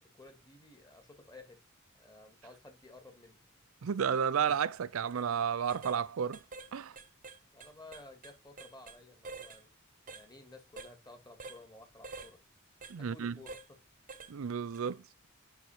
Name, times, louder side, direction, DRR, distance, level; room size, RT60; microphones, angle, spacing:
voice 1, 0.1-1.6 1.9-3.4 7.5-9.7 10.1-12.4 13.0-13.8, left 2 dB, 20° left, 2.2 m, -54 dB
voice 2, 3.8-6.4 6.7-7.0 12.9-13.3 14.3-15.0, right 7 dB, 80° right, 0.5 m, -32 dB
sound 1, 5.1-5.2 5.7-6.0 6.3-6.7 6.9-9.0 9.2-9.6 10.1-10.2 10.8-10.9 11.4-11.6 12.0-12.3 12.8-12.9 13.5-13.7 14.1-14.3 14.7-14.9, right 3 dB, 40° right, 1.0 m, -47 dB
6.9 x 6.0 x 4.2 m
head